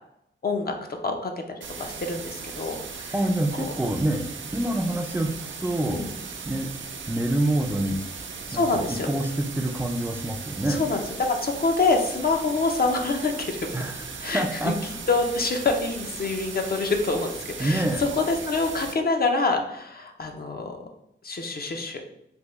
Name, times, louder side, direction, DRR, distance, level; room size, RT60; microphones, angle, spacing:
voice 1, 0.4-0.8 1.0-1.3 1.8-3.1 3.6-3.7 5.9-6.1 8.5-9.1 10.8-13.7 14.2-14.7 15.1-20.8 21.2-22.0, left 3 dB, 50° left, 4 dB, 0.5 m, -26 dB
sound 1, 1.6-19.0, right 5 dB, 70° right, 0.5 m, -38 dB
voice 2, 3.1-6.0 6.4-6.7 7.1-8.0 8.5-10.8 13.7-14.8 17.6-18.0, right 1 dB, 10° right, 3 dB, 0.3 m, -26 dB
3.5 x 2.5 x 3.0 m, 0.79 s
wide cardioid pair, 80°, 20 cm